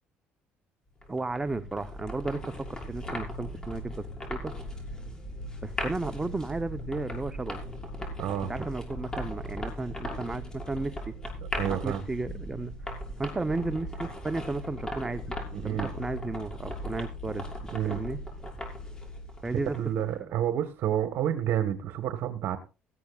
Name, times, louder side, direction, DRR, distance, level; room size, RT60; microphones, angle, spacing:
sound 1, 1.0-20.0, left 1 dB, 15° left, 6.3 m, -38 dB
voice 1, 1.1-4.0 4.3-4.5 5.6-7.6 8.5-11.1 11.7-12.7 13.2-17.5 17.8-18.2 19.4-19.8, right 3 dB, 15° right, 9 dB, 0.9 m, -34 dB
voice 2, 8.2-8.5 11.4-12.0 15.5-15.9 17.7-18.0 19.7-22.6, right 10 dB, 70° right, 8 dB, 1.5 m, -29 dB
18.0 x 15.5 x 2.5 m, 0.32 s
cardioid pair, 105°, 4 cm